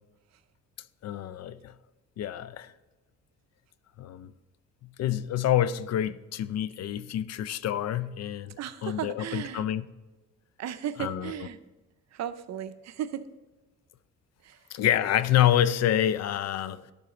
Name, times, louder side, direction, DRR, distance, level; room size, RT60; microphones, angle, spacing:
voice 1, 1.0-1.7 2.2-2.7 4.0-4.3 5.0-8.6 8.8-9.8 11.0-11.3 14.7-16.9, left 11 dB, 60° left, 0.4 m, -27 dB
voice 2, 8.6-9.7 10.6-11.6 12.1-13.3 14.4-14.7, right 10 dB, 60° right, 0.6 m, -35 dB
11.5 x 4.0 x 3.9 m
cardioid pair, 90°, 30 cm